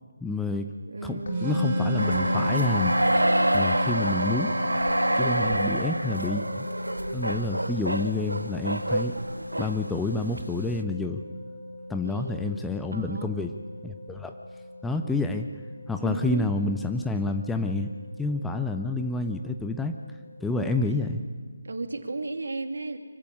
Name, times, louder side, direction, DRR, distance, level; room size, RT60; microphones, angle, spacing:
voice 1, 0.2-0.7 1.0-2.9 3.5-4.5 5.2-6.7 7.1-9.2 9.6-11.2 11.9-13.5 13.8-14.4 14.8-15.5 15.9-17.9 18.2-20.0 20.4-21.2, left 2 dB, 5° left, 5 dB, 0.6 m, -29 dB
voice 2, 0.9-1.7 5.4-6.0 12.0-13.3 16.0-16.5 18.9-19.1 20.5-21.0 21.6-23.0, right 3 dB, 60° right, 7 dB, 2.2 m, -35 dB
sound 1, 1.3-20.6, equal, 50° left, 5.2 m, -34 dB
sound 2, 1.3-5.5, right 1 dB, 30° right, 3.0 m, -36 dB
sound 3, 2.0-10.4, right 1 dB, 80° right, 1.4 m, -27 dB
24.5 x 15.5 x 9.8 m, 1.5 s
figure-of-eight pair, 155°, 0 cm